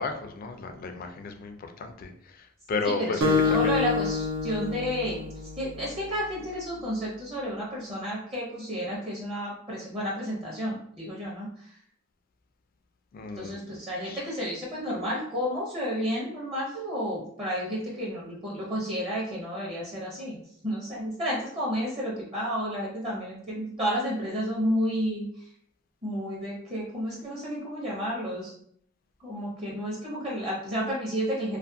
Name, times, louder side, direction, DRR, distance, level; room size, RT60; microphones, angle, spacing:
voice 1, 0.0-3.7 13.1-13.6 14.0-14.2, left 4 dB, 45° left, 6 dB, 0.3 m, -34 dB
voice 2, 3.2-5.2 5.6-11.5 13.4-20.4 20.6-25.3 26.0-28.5 29.2-31.6, equal, 30° right, -5 dB, 0.6 m, -31 dB
Acoustic guitar, 3.2-6.0, left 4 dB, 80° right, 0.6 m, -27 dB
2.4 x 2.4 x 2.6 m, 0.66 s
head